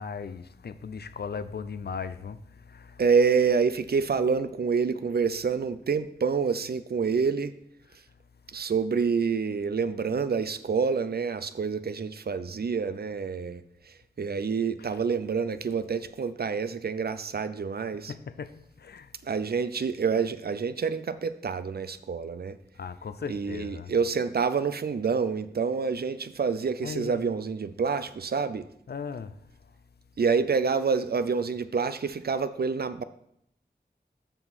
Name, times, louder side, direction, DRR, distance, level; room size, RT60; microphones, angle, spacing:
voice 1, 0.0-2.4 2.7-3.0 14.9-15.0 18.1-19.1 22.8-23.9 26.8-27.2 28.9-29.3, left 6 dB, 70° left, 0.4 m, -37 dB
voice 2, 3.0-7.5 8.5-18.1 19.2-22.6 23.3-28.7 30.2-33.0, right 5 dB, 65° right, 0.5 m, -27 dB
6.9 x 5.6 x 4.1 m
wide cardioid pair, 50°, 17 cm